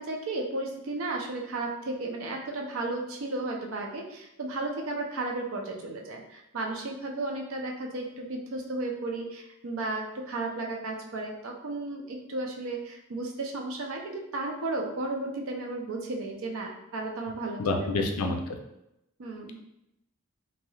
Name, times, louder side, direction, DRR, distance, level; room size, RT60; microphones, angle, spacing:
voice 1, 0.0-17.9 19.2-19.6, right 2 dB, 65° right, 1 dB, 0.5 m, -34 dB
voice 2, 17.6-18.6, left 2 dB, 80° left, 4 dB, 0.4 m, -28 dB
3.1 x 2.9 x 2.3 m, 0.84 s
head